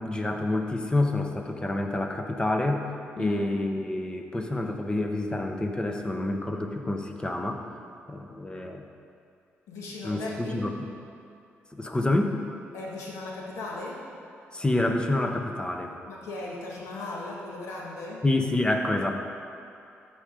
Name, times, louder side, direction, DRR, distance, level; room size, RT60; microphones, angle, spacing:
voice 1, 0.0-2.8 3.2-7.6 8.1-8.8 10.0-10.7 11.7-12.4 14.5-15.9 18.2-19.1, left 2 dB, 20° left, 4 dB, 1.0 m, -27 dB
voice 2, 3.2-3.5 9.7-10.6 12.7-14.2 16.0-18.2, left 2 dB, 90° left, -2 dB, 1.7 m, -37 dB
13.5 x 5.1 x 5.1 m, 2.5 s
cardioid pair, 70°, 5 cm